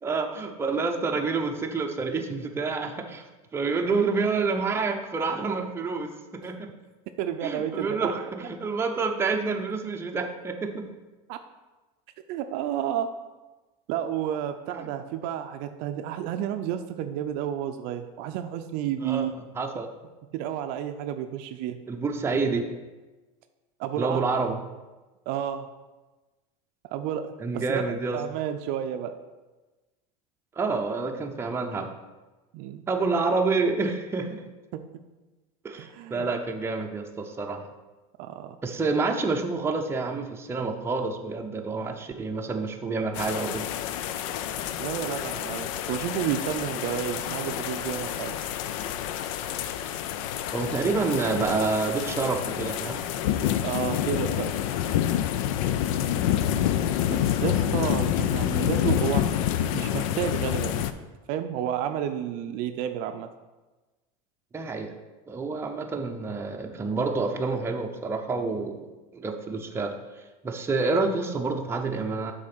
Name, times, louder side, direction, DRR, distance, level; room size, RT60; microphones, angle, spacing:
voice 1, 0.0-3.2 3.5-6.7 7.4-10.9 14.8-14.9 19.0-19.9 21.9-22.6 24.0-24.6 27.4-28.2 30.6-31.9 32.9-34.4 35.6-37.7 38.6-43.7 50.5-53.0 64.5-64.9 65.3-69.9 70.4-72.3, right 4 dB, 15° right, 3 dB, 0.7 m, -28 dB
voice 2, 7.2-8.1 11.3-11.4 12.3-13.1 13.9-19.3 20.3-21.8 23.8-24.2 25.3-25.7 26.9-27.8 28.1-29.2 32.5-32.8 34.7-34.9 35.8-36.3 38.2-38.6 44.8-48.4 53.6-54.5 57.1-59.3 59.7-61.0 61.3-63.3, right 10 dB, 55° right, 7 dB, 0.5 m, -31 dB
sound 1, 43.1-60.9, left 10 dB, 70° left, 0.5 m, -28 dB
6.3 x 4.0 x 5.9 m, 1.2 s
supercardioid pair, 130°, 18 cm